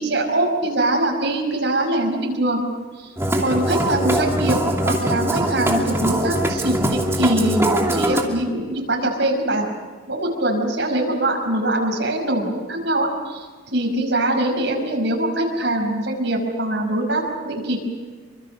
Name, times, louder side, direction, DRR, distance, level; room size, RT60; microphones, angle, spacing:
voice 1, 0.0-2.6 3.0-3.1 3.4-4.6 4.8-9.6 10.1-17.8, right 1 dB, 70° right, 0 dB, 5.6 m, -22 dB
Musical instrument, 3.2-8.2, right 1 dB, 15° right, 2.7 m, -22 dB
27.0 x 24.5 x 6.4 m, 1.5 s
head